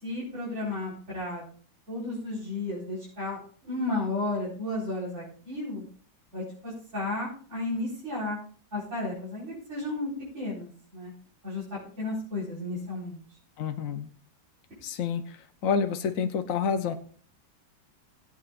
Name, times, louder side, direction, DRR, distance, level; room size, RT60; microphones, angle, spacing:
voice 1, 0.0-1.4 1.9-5.8 6.3-8.4 8.7-11.1 11.4-11.6 12.0-13.2, left 2 dB, 35° right, -9 dB, 5.0 m, -33 dB
voice 2, 13.6-14.1 14.8-15.2 15.6-16.9, left 6 dB, 55° left, 6 dB, 1.1 m, -28 dB
19.5 x 8.5 x 2.5 m, 0.43 s
omnidirectional pair, 2.1 m